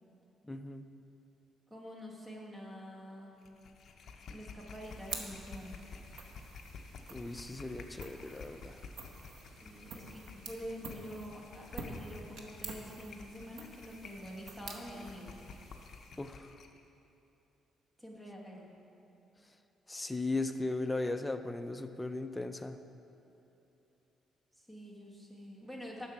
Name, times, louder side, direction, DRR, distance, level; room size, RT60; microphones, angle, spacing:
voice 1, 0.4-0.9 7.1-8.8 16.2-16.5 19.9-22.8, left 2 dB, 10° left, 9 dB, 0.4 m, -37 dB
voice 2, 1.7-3.3 4.3-5.8 9.6-15.4 18.0-18.7 24.7-26.1, equal, 5° right, -2 dB, 1.3 m, -46 dB
sound 1, 3.4-16.8, left 4 dB, 50° left, 0.6 m, -51 dB
sound 2, 4.7-16.4, right 4 dB, 75° right, 0.9 m, -49 dB
7.8 x 6.2 x 5.8 m, 2.9 s
cardioid pair, 130°, 0 cm